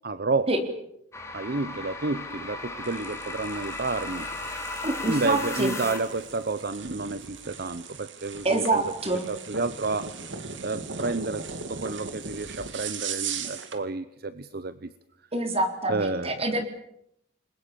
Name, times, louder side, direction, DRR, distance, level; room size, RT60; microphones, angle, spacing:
voice 1, 0.0-0.5 1.3-4.3 5.1-8.8 9.3-10.2 10.6-14.9 15.9-16.6, right 3 dB, 55° right, 14 dB, 0.9 m, -30 dB
sound 1, 1.1-6.3, left 2 dB, 15° left, 3.4 m, -36 dB
sound 2, 2.8-13.8, right 6 dB, 80° right, 2.5 m, -39 dB
voice 2, 4.8-5.8 8.4-9.3 15.3-16.7, right 2 dB, 35° right, 6 dB, 3.8 m, -26 dB
29.0 x 21.5 x 6.9 m, 0.75 s
head